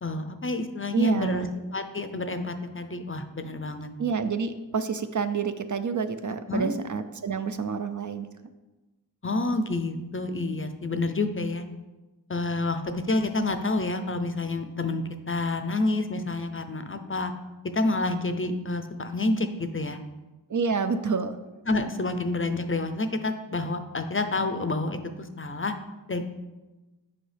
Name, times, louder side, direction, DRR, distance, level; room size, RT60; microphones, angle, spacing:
voice 1, 0.0-1.5 1.7-3.9 6.5-6.7 9.2-11.6 12.3-17.3 17.7-20.0 21.7-25.7 26.1-26.2, left 2 dB, 30° left, 8 dB, 0.5 m, -28 dB
voice 2, 0.9-1.5 4.0-8.3 20.5-21.4, right 5 dB, 50° right, 10 dB, 0.4 m, -28 dB
7.9 x 5.4 x 3.3 m, 1.1 s
wide cardioid pair, 70°, 41 cm